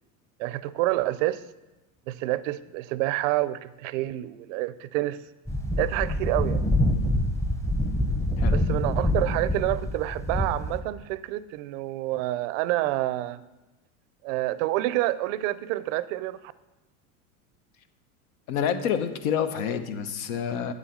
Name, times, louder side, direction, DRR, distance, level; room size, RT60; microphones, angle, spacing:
voice 1, 0.4-1.4 2.1-5.2 5.8-6.6 8.5-13.4 14.2-16.4, right 16 dB, 65° right, 16 dB, 0.6 m, -28 dB
sound 1, 5.5-10.8, left 1 dB, 5° left, 0.8 m, -26 dB
voice 2, 18.5-20.7, left 8 dB, 75° left, 9 dB, 1.0 m, -28 dB
8.3 x 7.4 x 5.1 m, 1.0 s
supercardioid pair, 105°, 41 cm